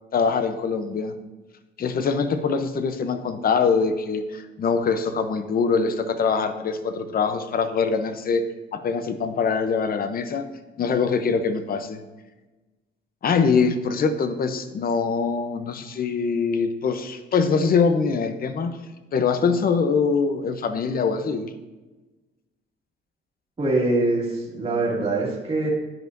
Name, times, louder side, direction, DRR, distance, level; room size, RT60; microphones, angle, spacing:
voice 1, 0.1-1.1 1.8-10.4 10.8-12.0 13.2-18.8 19.1-21.5, left 5 dB, 50° left, 9 dB, 0.7 m, -23 dB
voice 2, 23.6-25.7, right 2 dB, 30° right, -4 dB, 1.8 m, -23 dB
10.5 x 4.9 x 2.6 m, 1.2 s
cardioid pair, 90°, 20 cm